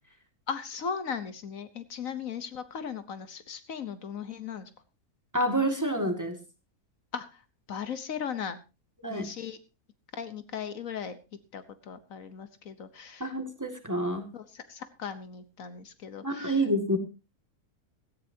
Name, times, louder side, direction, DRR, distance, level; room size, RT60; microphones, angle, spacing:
voice 1, 0.5-4.7 7.1-7.4 7.7-8.6 9.1-9.6 10.1-11.2 11.5-13.3 14.3-16.6, left 7 dB, 70° left, 11 dB, 1.4 m, -37 dB
voice 2, 5.3-6.4 9.0-9.3 13.2-14.2 16.2-17.0, right 1 dB, 10° right, 5 dB, 2.1 m, -28 dB
17.0 x 14.5 x 2.8 m, 0.30 s
omnidirectional pair, 1.5 m